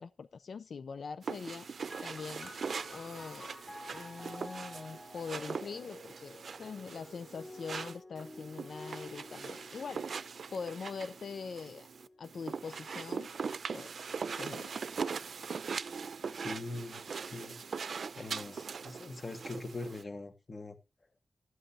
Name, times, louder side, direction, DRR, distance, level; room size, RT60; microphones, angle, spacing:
voice 1, 0.0-1.7 2.0-2.5 2.9-3.6 3.9-10.0 10.5-11.9 12.2-13.3 13.7-13.9 14.4-14.7, left 5 dB, 80° left, 0.5 m, -43 dB
sound 1, 1.2-20.0, right 5 dB, 80° right, 0.6 m, -41 dB
sound 2, 1.9-15.1 16.0-16.8, left 1 dB, 20° left, 0.8 m, -52 dB
voice 2, 16.3-17.6 18.1-20.8, left 2 dB, 40° left, 1.7 m, -42 dB
13.0 x 7.9 x 4.1 m
wide cardioid pair, 120°, 0 cm